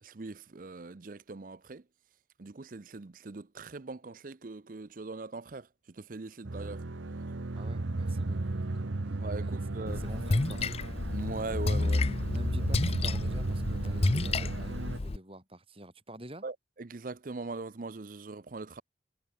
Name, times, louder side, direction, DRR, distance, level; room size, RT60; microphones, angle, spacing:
voice 1, 0.0-1.8 2.4-6.8 9.1-10.0 11.1-12.1 16.4-18.8, right 3 dB, 45° right, 0.6 m, -41 dB
sound 1, 6.4-15.0, right 2 dB, 90° right, 1.0 m, -35 dB
voice 2, 7.5-8.7 9.0-9.6 10.0-10.8 12.3-16.4, right 1 dB, 30° right, 5.7 m, -48 dB
Splash splatter, 9.9-15.2, left 2 dB, 30° left, 0.5 m, -30 dB
head